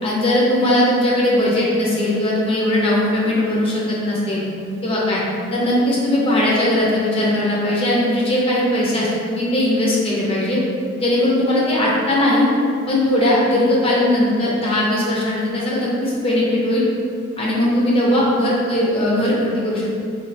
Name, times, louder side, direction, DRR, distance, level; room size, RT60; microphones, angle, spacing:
voice 1, 0.0-4.4 4.8-5.2 5.5-10.6 11.0-12.5 12.9-16.8 17.4-19.9, left 1 dB, 30° left, -5 dB, 0.5 m, -19 dB
3.2 x 2.3 x 2.6 m, 2.4 s
head